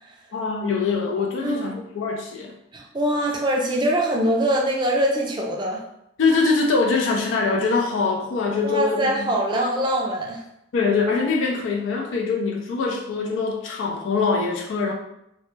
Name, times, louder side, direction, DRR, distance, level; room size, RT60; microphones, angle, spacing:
voice 1, 0.3-2.5 6.2-9.3 10.7-14.9, left 4 dB, 85° left, 1 dB, 0.3 m, -23 dB
voice 2, 2.7-5.8 8.6-10.4, right 1 dB, 25° right, -1 dB, 0.3 m, -23 dB
2.1 x 2.0 x 3.1 m, 0.81 s
head